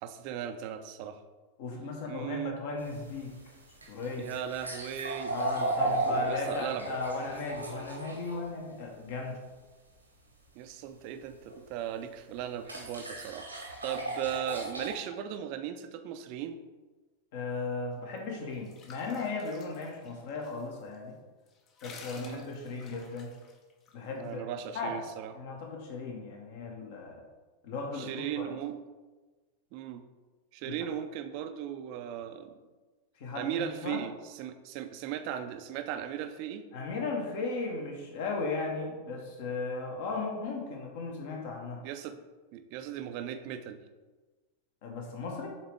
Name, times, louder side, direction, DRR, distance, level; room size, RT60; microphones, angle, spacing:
voice 1, 0.0-1.2 2.1-2.6 4.2-6.9 10.6-16.6 22.2-22.5 24.1-25.3 27.9-28.8 29.7-30.0 30.5-32.5 33.3-36.7 41.8-42.2 42.5-43.8, right 10 dB, 45° right, 9 dB, 0.5 m, -37 dB
voice 2, 1.6-3.3 3.9-4.3 5.3-9.4 17.3-21.2 21.8-23.3 23.9-25.0 25.3-27.2 27.6-28.1 28.3-28.5 30.6-30.9 33.2-34.0 36.7-41.8 44.8-45.5, left 3 dB, 50° left, 1 dB, 1.3 m, -36 dB
sound 1, 2.8-8.4 11.5-11.6 12.6-15.0, right 2 dB, 85° right, 1.2 m, -34 dB
sound 2, 18.2-20.6 20.9-21.0 21.5-23.9, left 4 dB, 30° left, 0.7 m, -52 dB
7.2 x 4.0 x 3.4 m, 1.3 s
figure-of-eight pair, 90°, 0 cm